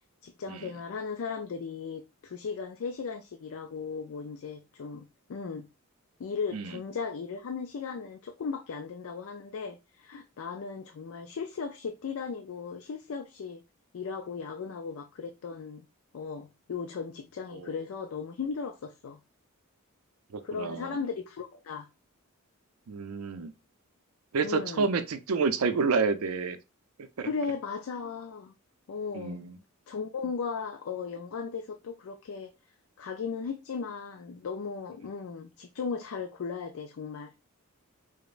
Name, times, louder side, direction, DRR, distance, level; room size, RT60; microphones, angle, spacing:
voice 1, 0.2-5.7 6.2-13.6 13.9-15.9 16.1-19.2 20.4-21.9 24.4-24.9 27.3-28.5 28.9-29.4 29.9-32.5 33.0-37.3, left 5 dB, 70° left, 0.4 m, -36 dB
voice 2, 20.3-21.0 22.9-23.5 24.3-26.6 27.2-27.3 29.1-29.5, right 4 dB, 85° right, 0.5 m, -29 dB
4.9 x 2.1 x 2.4 m
head